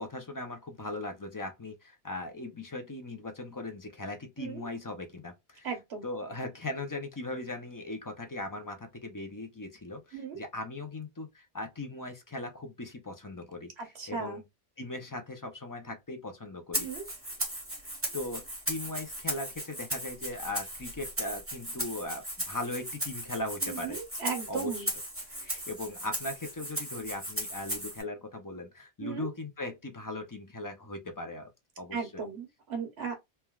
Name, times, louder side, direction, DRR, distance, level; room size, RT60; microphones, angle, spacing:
voice 1, 0.0-5.7 6.0-14.4 14.8-16.9 18.1-24.0 24.5-24.9 25.4-31.5 31.8-32.2, left 2 dB, 30° left, 0.4 m, -39 dB
voice 2, 5.6-6.1 10.1-10.4 13.8-14.4 16.8-17.0 23.6-24.9 25.3-25.4 29.0-29.3 31.9-33.1, right 6 dB, 85° right, 1.2 m, -36 dB
Rattle (instrument), 16.7-28.0, right 1 dB, 15° right, 1.0 m, -37 dB
3.2 x 2.2 x 2.3 m
omnidirectional pair, 1.0 m